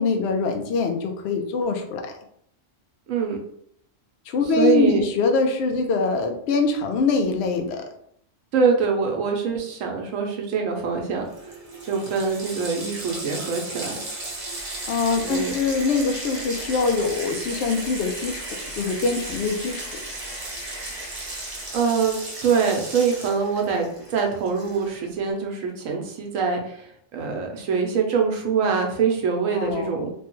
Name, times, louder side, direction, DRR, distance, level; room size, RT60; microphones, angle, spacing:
voice 1, 0.0-2.1 4.3-7.8 14.9-19.9 29.5-30.1, left 4 dB, 65° left, 4 dB, 0.7 m, -24 dB
voice 2, 3.1-3.4 4.6-5.0 8.5-11.3 11.9-14.0 15.2-15.6 21.7-30.1, right 5 dB, 90° right, 2 dB, 1.1 m, -24 dB
Water tap faucet, 11.0-11.1 11.3-25.1, right 2 dB, 40° right, 0.6 m, -36 dB
sound 1, 14.2-21.9, right 1 dB, 25° left, 0.8 m, -40 dB
3.2 x 2.2 x 2.9 m, 0.68 s
omnidirectional pair, 1.3 m